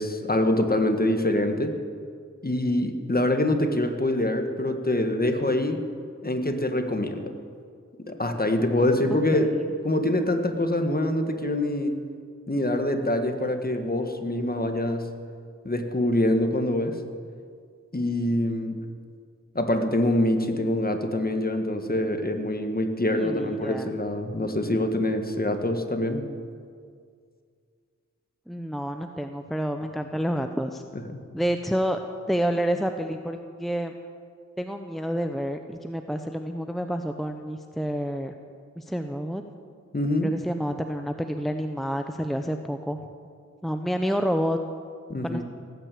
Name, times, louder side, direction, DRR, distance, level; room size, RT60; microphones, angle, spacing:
voice 1, 0.0-1.8 2.4-5.8 6.2-7.3 8.0-9.5 9.8-12.0 12.5-15.1 15.6-17.0 17.9-18.8 19.6-26.2 31.1-31.2 39.9-40.3 45.1-45.4, left 1 dB, 30° left, 6 dB, 1.8 m, -25 dB
voice 2, 9.1-9.6 23.1-23.9 28.5-30.8 31.3-32.0 32.3-33.9 34.6-38.3 38.8-39.4 40.2-43.0 43.6-44.6 45.2-45.4, equal, ahead, 6 dB, 0.8 m, -29 dB
18.0 x 9.3 x 8.5 m, 2.1 s
wide cardioid pair, 55°, 29 cm